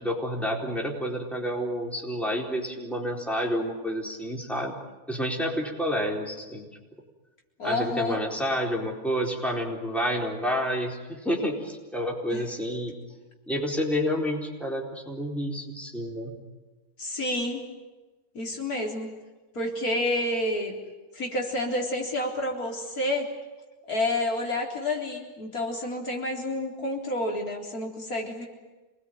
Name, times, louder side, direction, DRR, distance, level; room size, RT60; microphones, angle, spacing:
voice 1, 0.0-4.8 5.1-6.7 7.6-13.0 13.5-16.4, equal, ahead, 0 dB, 4.1 m, -29 dB
voice 2, 7.6-8.2 12.3-12.4 17.0-17.6 18.3-19.1 19.5-20.7 21.1-23.3 23.9-28.5, left 1 dB, 75° left, 1 dB, 4.3 m, -29 dB
27.5 x 20.0 x 9.4 m, 1.2 s
omnidirectional pair, 1.6 m